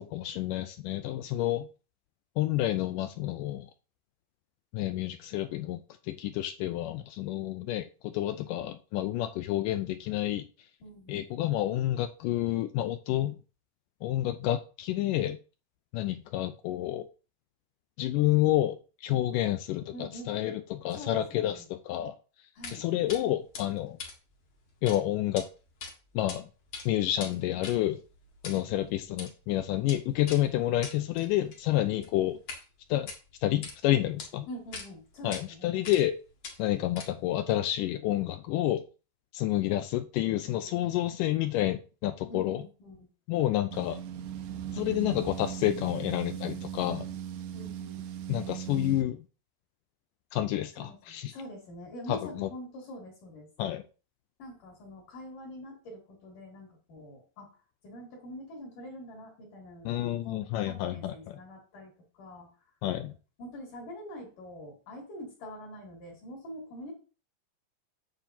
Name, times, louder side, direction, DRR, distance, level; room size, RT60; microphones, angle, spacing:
voice 1, 0.0-1.7 2.4-3.7 4.7-10.5 11.1-13.4 14.0-15.4 15.9-17.1 18.0-22.2 22.7-24.0 24.8-25.5 26.2-26.5 26.9-28.0 28.4-32.4 32.9-33.1 33.4-34.5 35.2-36.2 36.6-38.8 39.3-42.6 43.3-44.0 44.7-47.1 48.3-49.2 50.3-51.3 52.1-52.5 53.6-53.8 59.9-61.4 62.8-63.1, left 14 dB, 80° left, 10 dB, 1.9 m, -29 dB
voice 2, 10.8-11.3 19.9-20.4 20.9-21.7 22.6-22.9 28.7-29.1 34.5-35.9 42.3-43.1 47.5-48.0 50.7-53.5 54.4-57.6 57.8-62.5 63.4-66.9, equal, 60° left, -2 dB, 4.0 m, -45 dB
sound 1, 22.6-22.8 23.1-23.2 23.5-25.0 25.2-25.4 25.8-26.4 26.6-32.6 33.0-33.7 34.2-34.3 34.7-34.9 35.3-35.4 35.8-36.1 36.4-37.3, left 4 dB, 45° left, 2.3 m, -43 dB
sound 2, 43.7-49.1, right 9 dB, 70° right, 2.1 m, -38 dB
9.0 x 7.6 x 2.8 m, 0.34 s
omnidirectional pair, 4.2 m